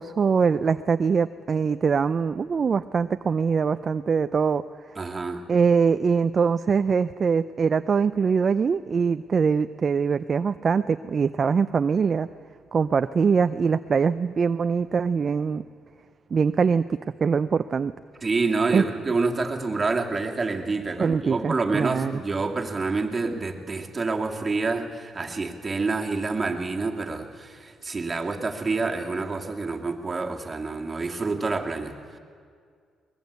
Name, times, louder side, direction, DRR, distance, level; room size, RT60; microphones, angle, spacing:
voice 1, 0.0-4.6 5.5-12.3 12.7-15.6 16.3-17.9 18.7-18.8 21.0-22.2, right 5 dB, 45° right, 11 dB, 0.5 m, -23 dB
voice 2, 5.0-5.4 18.2-31.9, right 3 dB, 25° right, 2 dB, 2.3 m, -27 dB
23.0 x 20.5 x 8.2 m, 2.2 s
cardioid pair, 90°, 0 cm